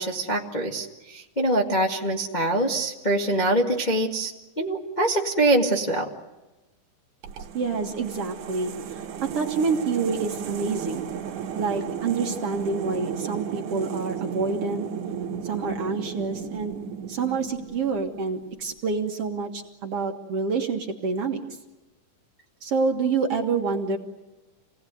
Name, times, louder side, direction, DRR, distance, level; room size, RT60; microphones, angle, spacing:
voice 1, 0.0-4.3 4.6-6.1, right 1 dB, 20° left, -1 dB, 1.2 m, -24 dB
sound 1, 7.2-18.3, right 8 dB, 65° right, 2.7 m, -34 dB
voice 2, 7.5-8.7 9.2-11.1 11.6-14.9 15.4-16.8 17.1-21.4 22.6-24.0, right 4 dB, 50° right, 3 dB, 2.3 m, -27 dB
28.5 x 19.0 x 9.3 m, 1.1 s
omnidirectional pair, 4.0 m